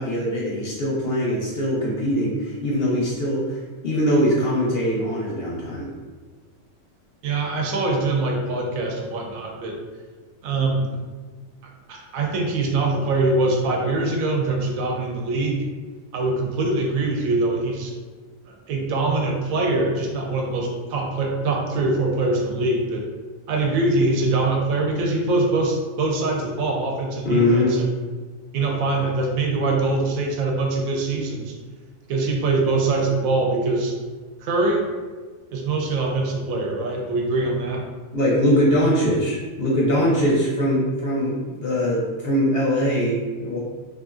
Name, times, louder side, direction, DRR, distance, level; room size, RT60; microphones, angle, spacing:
voice 1, 0.0-5.9 27.2-27.8 38.1-43.6, equal, 65° left, -5 dB, 0.6 m, -22 dB
voice 2, 7.2-9.8 10.4-11.0 11.6-15.7 16.1-17.9 18.5-23.0 23.5-27.8 28.5-31.5 32.1-34.0 34.4-34.9 35.5-37.9, right 2 dB, 90° right, 1 dB, 1.0 m, -23 dB
2.8 x 2.4 x 2.4 m, 1.4 s
omnidirectional pair, 1.4 m